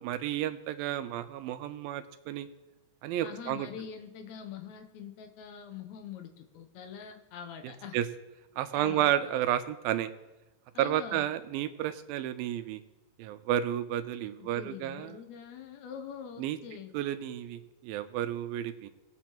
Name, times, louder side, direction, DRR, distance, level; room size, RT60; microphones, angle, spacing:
voice 1, 0.0-2.5 3.0-3.7 7.6-8.1 8.6-10.1 10.8-12.8 13.2-15.2 16.4-16.6 16.9-18.9, right 11 dB, 85° right, 10 dB, 2.4 m, -31 dB
voice 2, 3.2-8.0 8.7-9.1 10.7-11.2 14.4-16.9, left 8 dB, 85° left, 5 dB, 1.6 m, -44 dB
19.0 x 8.2 x 3.0 m, 1.0 s
omnidirectional pair, 4.2 m